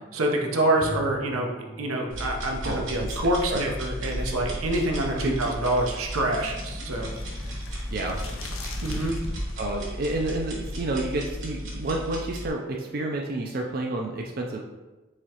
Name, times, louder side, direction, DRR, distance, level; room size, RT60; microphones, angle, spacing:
voice 1, 0.1-1.5 1.8-7.1 8.8-9.2, right 1 dB, 90° right, 1 dB, 0.7 m, -26 dB
Bowed string instrument, 0.8-5.0, equal, 20° left, 0.5 m, -42 dB
sound 1, 2.1-12.5, equal, 65° right, 1.3 m, -35 dB
voice 2, 2.6-3.1 3.5-3.6 5.2-5.4 7.9-8.2 9.6-14.6, right 2 dB, 45° right, 0 dB, 0.4 m, -30 dB
sound 2, 4.0-9.7, left 1 dB, 80° left, 0.6 m, -39 dB
4.9 x 3.6 x 2.9 m, 1.1 s
head